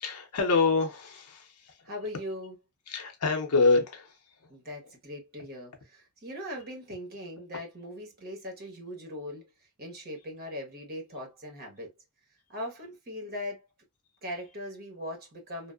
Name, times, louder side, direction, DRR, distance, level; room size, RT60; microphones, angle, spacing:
voice 1, 0.0-1.7 2.9-4.1, left 3 dB, 85° left, 0.6 m, -26 dB
voice 2, 1.8-2.6 4.5-9.5 9.8-11.9 12.5-13.6 14.2-15.7, left 1 dB, 45° right, 1.0 m, -40 dB
2.7 x 2.0 x 2.2 m
head